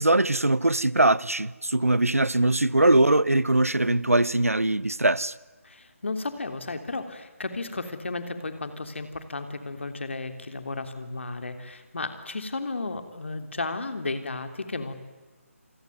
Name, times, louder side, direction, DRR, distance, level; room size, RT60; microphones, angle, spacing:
voice 1, 0.0-5.3, right 2 dB, 80° right, 1.0 m, -21 dB
voice 2, 5.6-14.9, left 3 dB, 55° left, 3.3 m, -34 dB
28.0 x 22.5 x 9.5 m
figure-of-eight pair, 150°, 8 cm